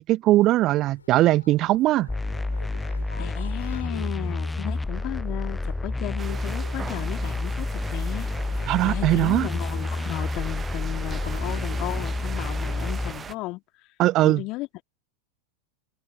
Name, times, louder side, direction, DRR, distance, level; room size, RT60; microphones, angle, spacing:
voice 1, 0.0-2.1 8.7-9.5 14.0-14.4, right 16 dB, 35° right, 0.6 m, -20 dB
sound 1, 0.7-13.5, left 5 dB, 75° left, 5.4 m, -48 dB
sound 2, 2.1-13.1, left 2 dB, 5° left, 0.4 m, -29 dB
voice 2, 3.2-13.6 14.2-14.7, left 20 dB, 40° left, 2.1 m, -35 dB
sound 3, 6.2-13.4, right 6 dB, 20° right, 1.0 m, -39 dB
figure-of-eight pair, 90°, 0 cm